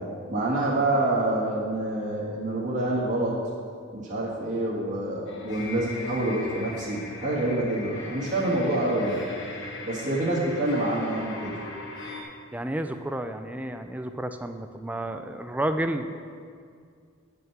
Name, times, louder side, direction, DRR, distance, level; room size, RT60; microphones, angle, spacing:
voice 1, 0.3-3.3 3.9-9.2 9.9-11.5, right 1 dB, 35° right, -7 dB, 1.4 m, -27 dB
sound 1, 5.3-12.2, left 3 dB, 55° left, 1.1 m, -39 dB
voice 2, 12.5-16.2, right 1 dB, 5° right, 7 dB, 0.3 m, -31 dB
9.4 x 5.6 x 5.9 m, 2.2 s
head